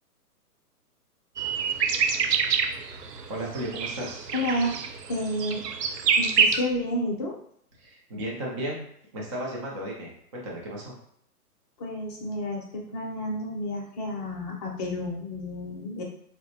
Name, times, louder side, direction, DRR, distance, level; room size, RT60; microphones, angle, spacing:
sound 1, 1.4-6.6, right 6 dB, 85° right, 0.6 m, -26 dB
voice 1, 3.3-4.3 7.8-8.8 9.1-11.0, right 1 dB, 20° right, -3 dB, 0.5 m, -34 dB
voice 2, 4.3-4.7 5.1-5.6 6.2-7.4 11.8-16.0, left 1 dB, 25° left, -1 dB, 0.7 m, -30 dB
4.0 x 2.1 x 2.7 m, 0.69 s
hypercardioid pair, 130°, 47 cm